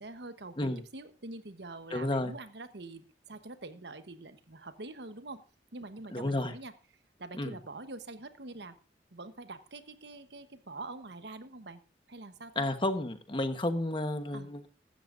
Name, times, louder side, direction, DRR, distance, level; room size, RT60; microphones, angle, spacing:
voice 1, 0.0-5.4 5.7-6.7 7.2-8.7 9.1-11.8 12.1-12.7 14.3-14.5, right 2 dB, 70° right, 10 dB, 1.1 m, -45 dB
voice 2, 1.9-2.3 6.1-6.5 7.4-7.5 12.6-14.7, left 1 dB, 30° left, 8 dB, 1.2 m, -31 dB
15.5 x 12.5 x 2.6 m, 0.36 s
head